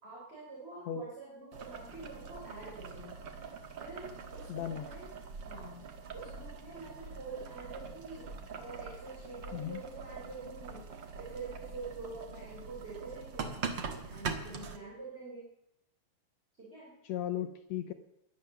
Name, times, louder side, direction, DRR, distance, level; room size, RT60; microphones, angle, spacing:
voice 1, 0.0-3.1 3.8-5.1 5.4-5.8 6.1-10.9 11.2-13.6 14.1-15.5 16.6-17.0, right 3 dB, 15° right, -4 dB, 3.9 m, -46 dB
Boiling, 1.5-14.8, right 5 dB, 65° right, 1.1 m, -43 dB
voice 2, 4.5-4.9 9.5-9.8 17.0-17.9, left 11 dB, 80° left, 7 dB, 1.6 m, -36 dB
18.0 x 12.0 x 6.8 m, 0.87 s
omnidirectional pair, 4.3 m